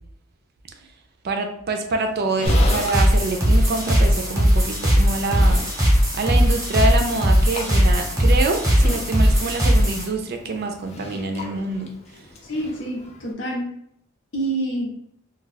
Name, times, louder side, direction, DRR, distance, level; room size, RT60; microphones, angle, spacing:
voice 1, 1.2-5.6 6.1-11.9, right 3 dB, 50° right, 4 dB, 0.4 m, -26 dB
Livestock farm animals working animals, 2.0-13.3, left 2 dB, 35° left, 0.5 m, -38 dB
sound 1, 2.5-10.0, equal, 15° right, 0.8 m, -18 dB
voice 2, 12.5-13.7 14.3-15.0, right 1 dB, 65° left, -1 dB, 0.9 m, -27 dB
2.3 x 2.3 x 4.0 m, 0.71 s
head